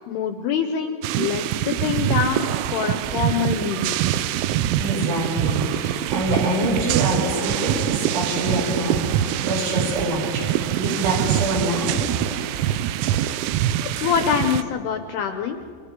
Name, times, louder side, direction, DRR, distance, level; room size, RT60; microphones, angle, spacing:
voice 1, 0.1-3.9 13.8-15.6, left 7 dB, 80° left, 6 dB, 2.4 m, -25 dB
sound 1, 1.0-14.6, right 11 dB, 90° right, 3.1 m, -24 dB
voice 2, 4.8-10.5 10.8-12.0, right 1 dB, 60° right, -1 dB, 6.4 m, -25 dB
29.0 x 25.0 x 3.8 m, 2.2 s
omnidirectional pair, 5.4 m